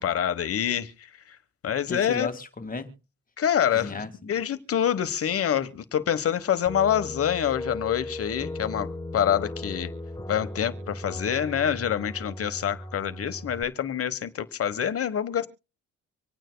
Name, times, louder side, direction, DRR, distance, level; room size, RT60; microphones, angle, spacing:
voice 1, 0.0-1.4 1.6-2.3 3.4-9.9 10.3-15.5, left 9 dB, 50° left, 1.2 m, -26 dB
voice 2, 1.9-2.9 3.7-4.3, left 3 dB, 30° left, 1.9 m, -34 dB
sound 1, 6.7-13.6, left 1 dB, 10° left, 1.2 m, -37 dB
25.5 x 9.1 x 2.2 m
cardioid pair, 90°, 30 cm